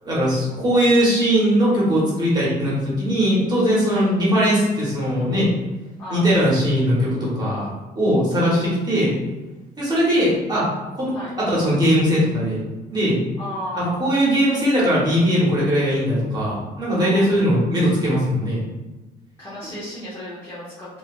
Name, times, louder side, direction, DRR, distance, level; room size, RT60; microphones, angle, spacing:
voice 1, 0.0-5.5 6.1-7.7 7.9-9.1 9.8-12.6 12.9-13.2 13.7-18.6, equal, 25° right, -6 dB, 1.3 m, -20 dB
voice 2, 3.8-4.1 6.0-6.3 11.1-11.4 13.4-14.0 17.0-17.3 19.4-21.0, left 1 dB, 15° left, -10 dB, 1.0 m, -34 dB
3.1 x 2.7 x 2.5 m, 1.1 s
cardioid pair, 110°, 17 cm